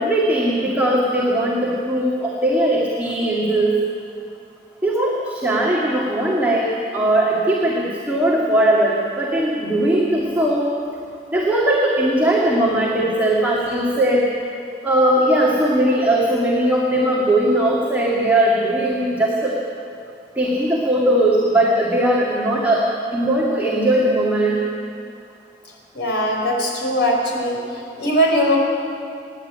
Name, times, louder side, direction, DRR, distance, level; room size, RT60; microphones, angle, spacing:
voice 1, 0.0-3.7 4.8-10.7 11.3-14.3 14.8-19.6 20.4-24.6, right 1 dB, 10° right, -5 dB, 2.4 m, -19 dB
voice 2, 25.9-27.6 28.0-28.6, equal, 75° left, 0 dB, 5.6 m, -20 dB
29.5 x 11.0 x 9.0 m, 2.5 s
head